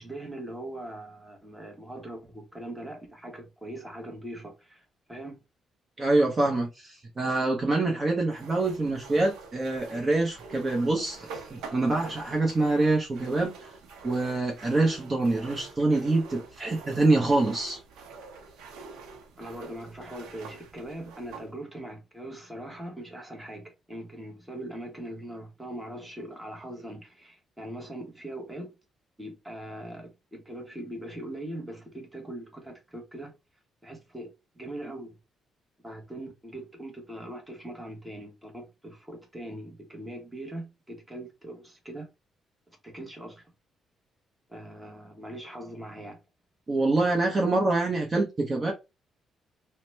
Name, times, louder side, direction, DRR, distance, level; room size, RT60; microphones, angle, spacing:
voice 1, 0.0-4.8 5.1-5.4 19.4-28.7 29.2-33.3 33.8-35.2 35.8-42.1 42.8-43.5 44.5-46.2, right 1 dB, 10° right, 1.1 m, -41 dB
voice 2, 6.0-13.7 14.0-17.8 46.7-48.7, right 2 dB, 30° right, 0.8 m, -25 dB
sound 1, 8.3-21.5, right 4 dB, 90° right, 0.6 m, -46 dB
2.8 x 2.1 x 3.2 m
cardioid pair, 90°, 0 cm